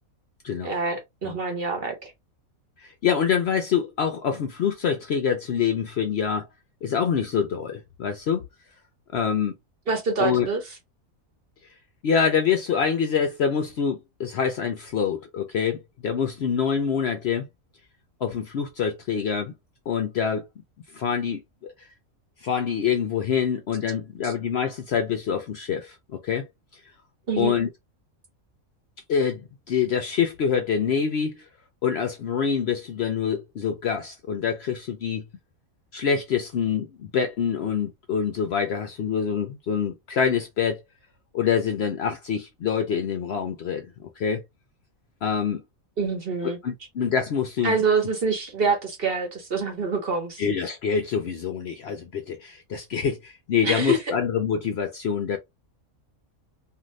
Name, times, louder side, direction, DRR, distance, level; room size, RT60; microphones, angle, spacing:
voice 1, 0.6-2.1 9.9-10.6 24.2-24.3 27.3-27.6 46.0-46.6 47.6-50.4 53.6-54.0, right 4 dB, 50° right, 1.0 m, -26 dB
voice 2, 2.8-6.5 6.8-8.4 9.1-9.5 10.2-10.5 12.0-17.5 18.2-19.5 19.9-20.5 20.9-21.7 22.4-26.0 26.2-26.5 27.4-27.7 29.1-31.4 31.8-35.2 35.9-40.8 41.3-44.4 45.2-45.6 46.4-47.8 50.4-55.4, left 7 dB, 65° left, 0.7 m, -25 dB
2.6 x 2.6 x 3.0 m
omnidirectional pair, 1.5 m